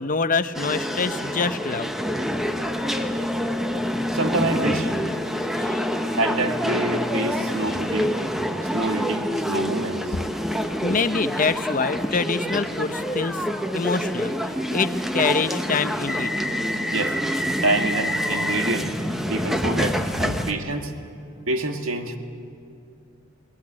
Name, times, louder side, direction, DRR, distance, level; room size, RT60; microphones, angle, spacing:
voice 1, 0.0-1.9 5.6-5.8 10.8-13.4 13.7-16.3, left 4 dB, 40° left, 12 dB, 0.7 m, -25 dB
sound 1, 0.5-20.5, equal, ahead, 1.0 m, -26 dB
voice 2, 4.1-4.9 6.1-8.1 8.7-10.2 16.9-17.2 17.6-18.9 19.3-20.9 21.5-22.2, right 2 dB, 70° right, 5 dB, 1.9 m, -26 dB
22.5 x 21.0 x 9.9 m, 2.5 s
head